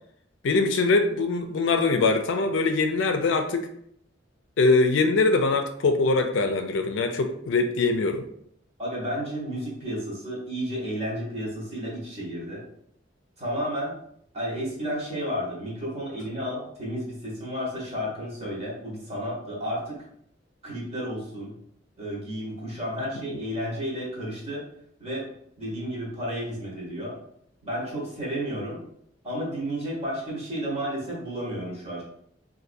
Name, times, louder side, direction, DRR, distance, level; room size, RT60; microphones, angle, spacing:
voice 1, 0.4-3.7 4.6-8.3 23.1-23.4, left 3 dB, 70° left, 6 dB, 0.4 m, -23 dB
voice 2, 8.8-12.6 13.4-13.9 14.3-20.0 20.6-21.5 22.0-24.6 25.0-25.2 25.6-27.1 27.6-28.8 29.2-32.0, equal, 35° right, -4 dB, 1.2 m, -32 dB
3.9 x 2.6 x 2.5 m, 0.70 s
head